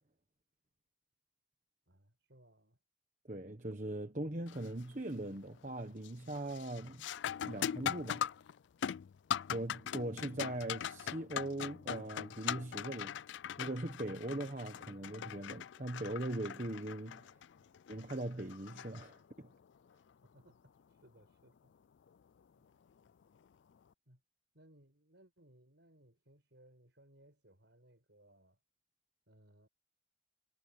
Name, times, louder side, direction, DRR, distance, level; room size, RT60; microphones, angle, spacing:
voice 1, 1.9-2.8 17.6-17.7 20.2-21.7 22.6-22.7 24.0-24.2 24.5-28.6 29.3-29.7, right 1 dB, 65° right, 5.1 m, -65 dB
voice 2, 3.3-7.0 7.4-8.2 9.5-13.2 13.6-17.3 17.9-19.5, right 1 dB, 40° right, 1.3 m, -40 dB
sound 1, 4.5-4.9 5.3-5.7 6.0-19.6 22.1-22.2 23.0-23.2, left 9 dB, 70° left, 0.3 m, -41 dB
head